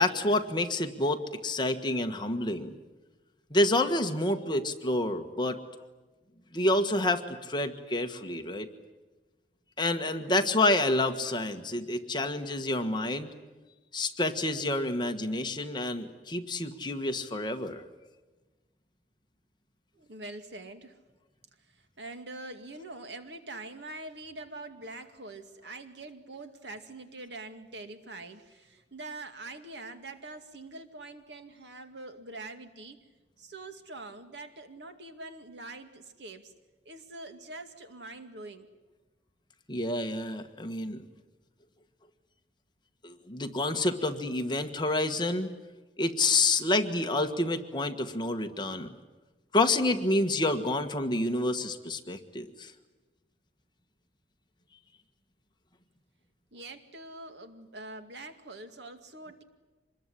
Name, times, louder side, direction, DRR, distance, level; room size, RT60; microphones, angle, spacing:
voice 1, 0.0-2.7 3.5-5.6 6.5-8.7 9.8-13.3 13.9-17.8 39.7-41.1 43.0-45.6 46.0-48.9 49.5-52.7, left 2 dB, 25° left, 6 dB, 1.6 m, -28 dB
voice 2, 19.9-21.0 21.7-33.0 33.4-36.5 36.9-38.7 56.5-59.4, right 2 dB, 75° right, 7 dB, 2.3 m, -44 dB
25.5 x 21.0 x 10.0 m, 1.2 s
head